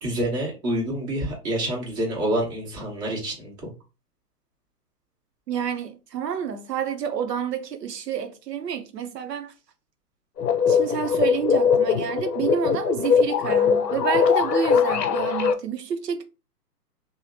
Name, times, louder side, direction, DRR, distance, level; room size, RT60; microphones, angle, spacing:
voice 1, 0.0-3.7, right 1 dB, 20° right, 1.0 m, -27 dB
voice 2, 5.5-9.5 10.7-16.2, right 7 dB, 80° right, 0.6 m, -29 dB
sound 1, 10.4-15.5, left 6 dB, 80° left, 0.6 m, -21 dB
3.1 x 2.0 x 2.6 m
figure-of-eight pair, 135°, 48 cm